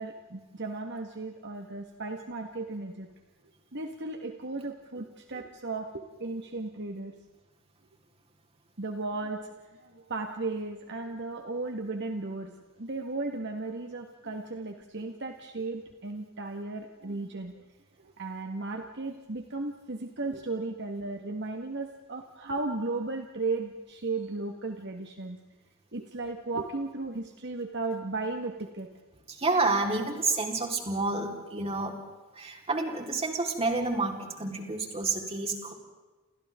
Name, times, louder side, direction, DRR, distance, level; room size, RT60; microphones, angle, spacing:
voice 1, 0.0-3.1 3.7-7.2 8.8-12.5 12.8-17.5 18.0-25.4 25.9-28.9, right 3 dB, 55° right, 4 dB, 1.8 m, -35 dB
voice 2, 29.3-32.0 32.3-35.7, right 3 dB, 30° right, 1 dB, 4.4 m, -29 dB
29.5 x 29.0 x 3.8 m, 1.2 s
head